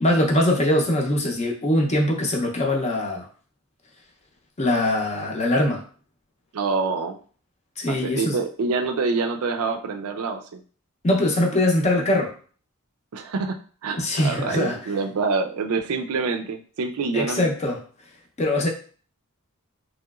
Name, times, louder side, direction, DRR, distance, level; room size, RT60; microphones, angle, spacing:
voice 1, 0.0-3.3 4.6-5.8 7.8-8.4 11.0-12.3 14.0-14.8 17.1-17.8 18.4-18.7, left 1 dB, 30° left, 0 dB, 0.6 m, -22 dB
voice 2, 6.5-7.2 7.9-10.6 13.1-17.5, right 4 dB, 80° right, 6 dB, 0.4 m, -26 dB
3.1 x 2.9 x 2.3 m, 0.42 s
head